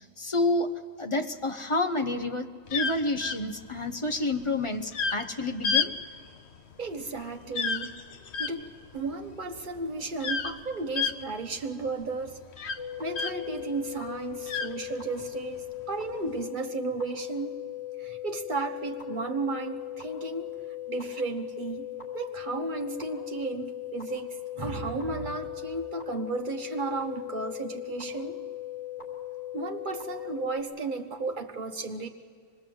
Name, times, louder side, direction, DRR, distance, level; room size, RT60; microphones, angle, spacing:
voice 1, 0.2-5.9, left 2 dB, 30° left, 7 dB, 0.8 m, -29 dB
sound 1, 2.7-13.6 14.0-15.4 16.1-16.4, left 5 dB, 60° left, 1.0 m, -32 dB
voice 2, 6.8-8.0 8.4-8.6 8.9-12.4 13.0-17.6 18.0-20.5 20.9-21.9 22.1-28.4 29.5-32.1, right 3 dB, 40° right, 4 dB, 1.3 m, -34 dB
sound 2, 12.8-30.6, left 13 dB, 85° left, 3.3 m, -38 dB
25.0 x 20.5 x 7.8 m, 2.2 s
omnidirectional pair, 1.3 m